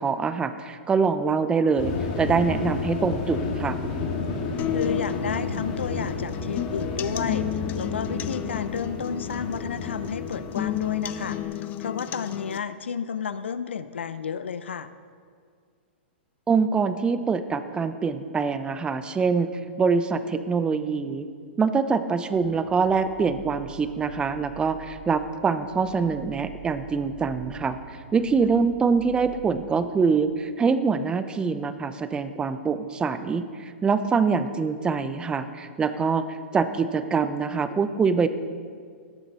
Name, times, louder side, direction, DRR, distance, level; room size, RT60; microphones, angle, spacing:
voice 1, 0.0-3.8 16.5-19.5 19.8-21.3 21.6-27.8 28.1-38.3, right 5 dB, 15° right, 11 dB, 0.6 m, -24 dB
sound 1, 1.8-11.4, left 4 dB, 45° left, 2.1 m, -31 dB
sound 2, 4.6-12.6, left 11 dB, 30° left, 0.5 m, -33 dB
voice 2, 4.7-14.9, left 6 dB, 85° left, 13 dB, 0.6 m, -32 dB
sound 3, 22.3-30.0, right 8 dB, 70° right, 2.0 m, -45 dB
18.0 x 8.0 x 4.2 m, 2.1 s
hypercardioid pair, 125°, 6 cm